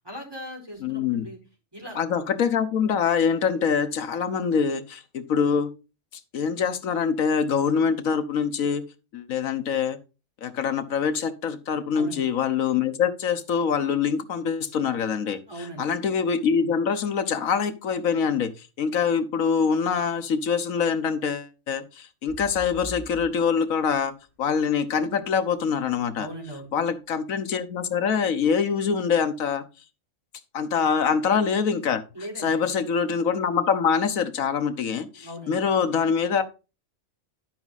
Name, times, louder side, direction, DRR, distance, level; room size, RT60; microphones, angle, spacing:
voice 1, 0.0-1.4 1.7-2.0 11.9-12.3 15.5-15.9 26.2-26.7 30.7-30.9 32.1-32.7 35.1-35.6, right 1 dB, 15° right, -1 dB, 4.8 m, -39 dB
voice 2, 0.8-1.3 1.9-5.7 6.3-8.8 9.1-10.0 10.4-15.4 15.8-18.5 18.8-24.1 24.4-26.3 26.7-29.6 30.5-32.0 32.4-36.4, left 6 dB, 85° left, 11 dB, 1.5 m, -24 dB
sound 1, 22.3-26.2 26.7-26.8, left 2 dB, 40° left, 2.5 m, -44 dB
11.5 x 6.0 x 4.0 m, 0.30 s
omnidirectional pair, 1.4 m